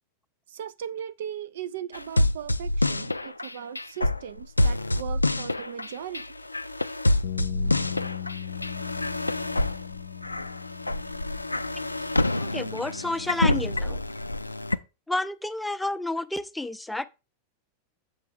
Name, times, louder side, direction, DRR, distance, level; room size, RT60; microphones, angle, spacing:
voice 1, 0.5-6.3, right 9 dB, 60° right, 0.3 m, -38 dB
sound 1, 1.9-14.8, left 1 dB, 85° left, 0.3 m, -27 dB
sound 2, 7.2-13.5, left 9 dB, 60° left, 0.7 m, -38 dB
voice 2, 12.4-14.0 15.1-17.1, left 2 dB, 5° left, 0.5 m, -30 dB
7.9 x 6.6 x 3.5 m
figure-of-eight pair, 90°, 0 cm